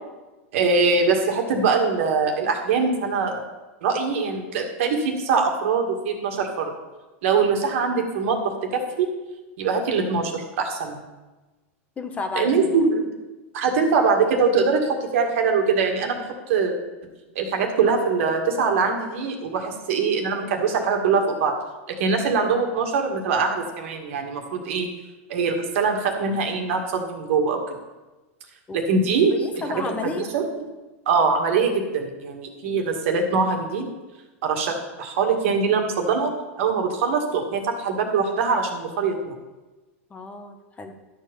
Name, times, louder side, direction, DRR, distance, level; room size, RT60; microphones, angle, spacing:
voice 1, 0.5-3.4 3.8-6.7 7.2-9.1 9.6-11.0 12.3-13.1 13.5-16.7 17.4-21.5 22.0-24.9 25.3-27.6 28.7-29.3 29.9-30.4 31.1-33.9 34.4-36.3 36.6-39.3, right 5 dB, 70° right, 3 dB, 2.0 m, -23 dB
voice 2, 12.0-12.7 28.7-28.8 29.3-30.3 40.1-40.9, left 3 dB, 20° left, 6 dB, 1.1 m, -31 dB
12.0 x 4.6 x 7.0 m, 1.2 s
supercardioid pair, 125°, 7 cm